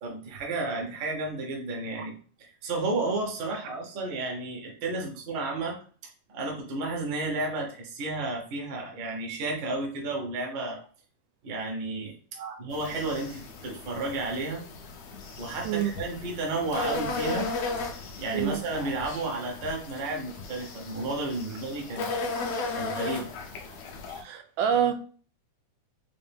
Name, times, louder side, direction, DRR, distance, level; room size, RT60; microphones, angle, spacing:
voice 1, 0.0-5.8 6.3-10.8 11.4-12.1 12.6-14.7 15.4-17.5 18.2-22.1 22.7-23.3, right 2 dB, 60° right, 1.3 m, -32 dB
sound 1, 12.7-24.2, left 3 dB, 70° left, 1.7 m, -36 dB
voice 2, 18.3-18.6 21.9-22.0 24.2-24.9, right 8 dB, 90° right, 2.2 m, -28 dB
5.4 x 2.6 x 3.5 m
omnidirectional pair, 3.7 m